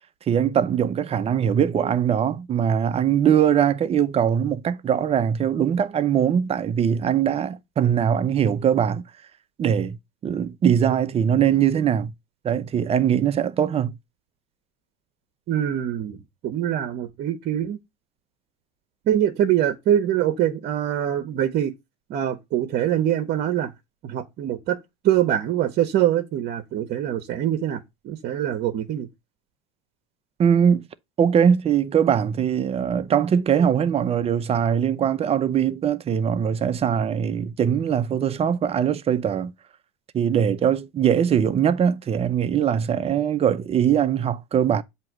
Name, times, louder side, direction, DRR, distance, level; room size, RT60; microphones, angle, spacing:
voice 1, 0.3-9.0 9.6-10.0 10.2-12.1 12.4-13.9 30.4-30.9 31.2-39.5 40.1-44.8, right 8 dB, 30° right, 0.6 m, -21 dB
voice 2, 15.5-16.2 16.4-17.8 19.1-21.7 22.1-23.7 24.0-24.8 25.0-29.1, right 11 dB, 50° right, 0.9 m, -24 dB
7.6 x 2.9 x 6.0 m
supercardioid pair, 105°, 21 cm